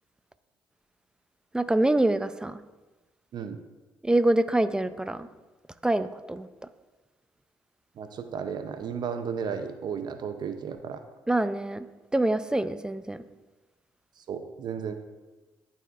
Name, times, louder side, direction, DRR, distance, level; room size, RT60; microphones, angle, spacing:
voice 1, 1.5-2.6 4.0-5.3 5.8-6.5 11.3-11.9 12.1-13.2, right 1 dB, 10° right, 13 dB, 0.4 m, -25 dB
voice 2, 8.0-11.0 14.3-14.9, right 7 dB, 60° right, 8 dB, 0.6 m, -34 dB
12.0 x 4.2 x 2.5 m, 1.2 s
supercardioid pair, 55°, 8 cm